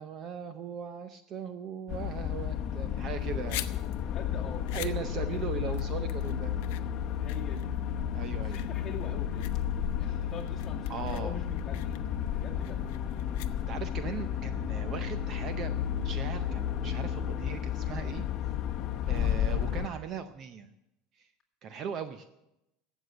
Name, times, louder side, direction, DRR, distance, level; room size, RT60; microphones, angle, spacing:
voice 1, 0.0-3.6 4.7-6.6 8.1-8.6 10.1-10.2 10.9-11.4 13.7-18.3 19.1-20.7 21.2-21.3 21.6-22.3, right 7 dB, 30° right, 10 dB, 0.5 m, -39 dB
sound 1, 1.9-19.9, left 9 dB, 35° left, 1.0 m, -32 dB
sound 2, 3.1-14.0, left 16 dB, 65° left, 0.6 m, -46 dB
voice 2, 4.0-5.8 7.2-7.8 8.2-9.5 9.9-12.9, left 5 dB, 20° left, -3 dB, 2.1 m, -45 dB
sound 3, 12.5-17.6, left 2 dB, 50° right, 4.1 m, -46 dB
12.5 x 8.1 x 7.8 m, 0.89 s
cardioid pair, 180°, 0 cm